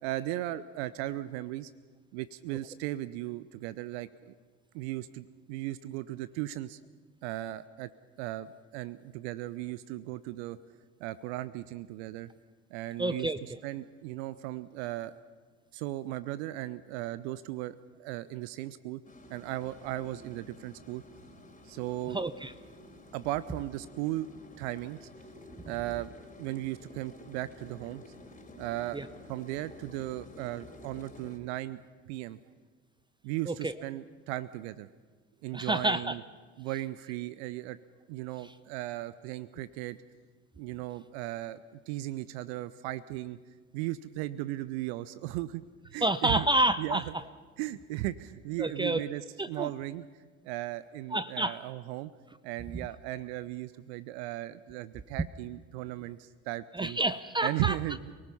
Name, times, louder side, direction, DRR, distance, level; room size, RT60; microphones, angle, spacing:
voice 1, 0.0-1.7 2.1-4.3 4.7-6.8 7.2-7.9 8.2-8.5 8.7-10.6 11.0-12.3 12.7-13.3 13.6-15.1 15.7-19.0 19.3-21.0 21.6-22.2 23.1-24.3 24.6-25.1 25.7-26.1 26.4-28.0 28.5-29.0 29.3-31.8 32.1-32.4 33.2-34.9 35.4-36.2 36.6-37.8 38.1-40.0 40.6-43.4 43.7-45.6 45.9-46.5 46.8-47.0 47.6-50.1 50.4-52.1 52.4-57.0 57.4-58.1, right 16 dB, 65° right, 16 dB, 0.7 m, -36 dB
voice 2, 13.0-13.4 22.1-22.5 28.9-29.1 33.5-33.7 35.5-36.2 46.0-47.0 48.6-49.0 49.4-49.7 51.1-51.6 56.7-57.8, right 1 dB, 15° right, 13 dB, 0.8 m, -28 dB
sound 1, 19.0-31.4, left 2 dB, 20° left, 4.0 m, -51 dB
27.5 x 18.5 x 5.6 m, 1.4 s
figure-of-eight pair, 55°, 36 cm